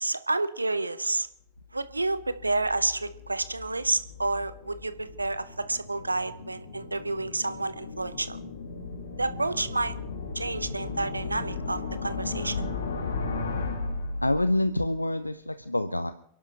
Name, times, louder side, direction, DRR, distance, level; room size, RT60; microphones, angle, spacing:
voice 1, 0.0-1.3 1.7-8.4 9.2-9.9 10.3-12.6, right 2 dB, 80° right, 14 dB, 0.7 m, -29 dB
sound 1, 1.8-14.8, left 3 dB, 65° left, 2.0 m, -36 dB
voice 2, 14.2-16.1, left 1 dB, 85° left, 12 dB, 0.5 m, -26 dB
28.5 x 11.5 x 3.0 m, 0.69 s
figure-of-eight pair, 90°, 0 cm